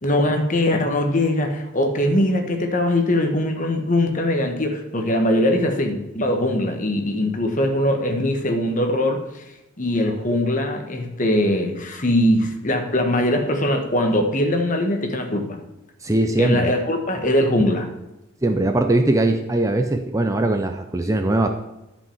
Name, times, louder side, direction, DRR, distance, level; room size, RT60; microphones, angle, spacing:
voice 1, 0.0-9.4 9.8-15.6 16.4-17.9, left 1 dB, 35° left, 4 dB, 1.4 m, -21 dB
voice 2, 16.0-16.7 18.4-21.5, right 2 dB, 15° right, 5 dB, 0.5 m, -20 dB
11.0 x 5.5 x 7.0 m, 0.95 s
head